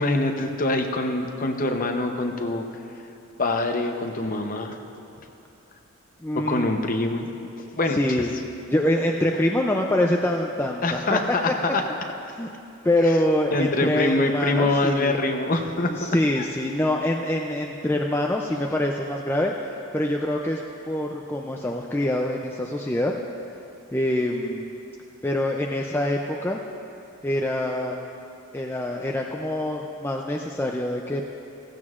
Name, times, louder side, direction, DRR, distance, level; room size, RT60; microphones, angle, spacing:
voice 1, 0.0-2.6 3.4-4.8 6.3-7.3 7.7-8.0 10.8-11.8 13.5-16.1 16.4-16.5, left 2 dB, 40° left, 4 dB, 0.8 m, -24 dB
voice 2, 6.2-7.0 7.9-8.3 8.7-11.2 12.3-12.5 12.8-15.3 15.8-19.5 19.9-23.1 23.9-24.7 25.2-26.6 27.2-28.1 28.5-31.2, left 1 dB, 10° left, 0 dB, 0.4 m, -25 dB
16.0 x 15.5 x 2.5 m, 2.7 s
head